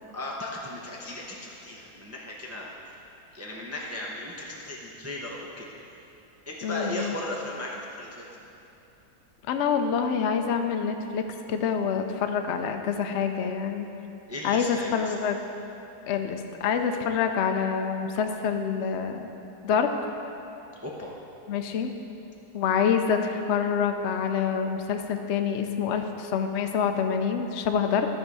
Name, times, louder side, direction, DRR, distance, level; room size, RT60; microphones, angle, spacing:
voice 1, 0.0-2.7 3.3-5.7 6.5-8.3 14.3-15.1 20.8-21.2, left 1 dB, 20° right, -3 dB, 0.4 m, -36 dB
voice 2, 6.6-7.2 9.5-13.9 14.4-15.4 16.1-19.3 19.6-19.9 21.5-21.9 22.5-28.1, left 6 dB, 70° left, 5 dB, 0.6 m, -26 dB
13.5 x 4.8 x 4.8 m, 2.9 s
omnidirectional pair, 1.9 m